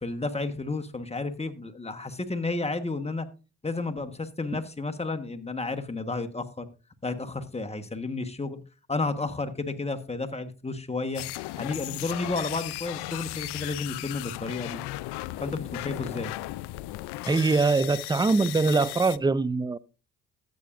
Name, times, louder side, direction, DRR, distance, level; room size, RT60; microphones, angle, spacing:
voice 1, 0.0-3.3 3.6-6.7 7.0-8.6 8.9-11.2 11.6-14.8 15.4-16.3, left 3 dB, 15° left, 1.2 m, -32 dB
sound 1, 11.1-19.2, left 18 dB, 75° left, 0.5 m, -36 dB
voice 2, 17.2-19.8, right 3 dB, 10° right, 0.4 m, -23 dB
13.5 x 8.4 x 2.5 m
supercardioid pair, 60°, 40 cm